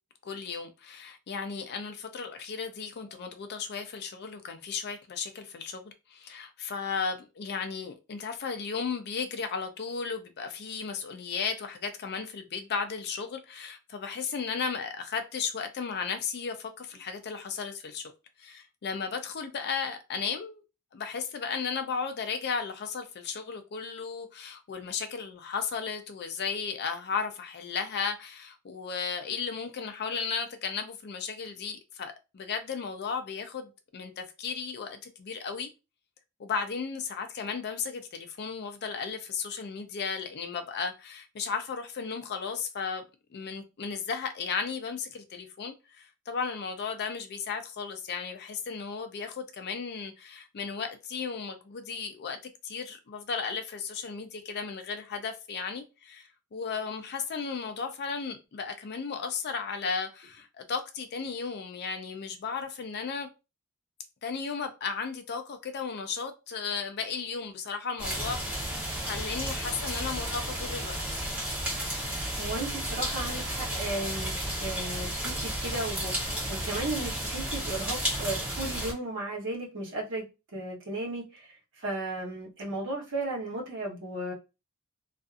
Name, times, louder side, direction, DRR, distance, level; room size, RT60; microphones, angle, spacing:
voice 1, 0.2-18.1 18.4-20.6 20.9-35.7 36.4-43.0 43.3-63.3 64.2-71.2, left 5 dB, 50° left, 0.4 m, -35 dB
sound 1, 68.0-78.9, right 1 dB, 5° right, 1.1 m, -33 dB
voice 2, 72.4-74.3 74.6-80.3 80.5-81.5 81.8-84.3, right 2 dB, 60° right, 1.0 m, -35 dB
2.5 x 2.4 x 2.4 m
head